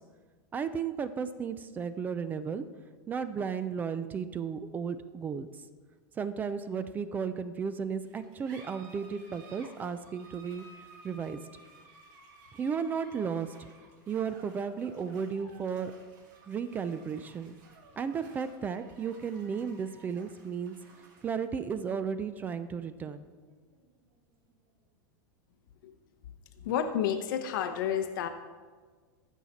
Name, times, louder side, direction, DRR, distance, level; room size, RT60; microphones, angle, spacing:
voice 1, 0.5-2.6 3.1-5.5 6.2-10.6 11.0-11.4 12.6-13.5 14.1-15.9 16.5-17.6 18.0-20.7 21.2-23.3, right 6 dB, 15° right, 12 dB, 0.3 m, -34 dB
sound 1, 8.0-25.0, right 3 dB, 60° right, 2.6 m, -56 dB
voice 2, 26.6-28.3, left 9 dB, 70° left, 7 dB, 0.7 m, -30 dB
14.5 x 5.8 x 4.1 m, 1.5 s
supercardioid pair, 155°, 11 cm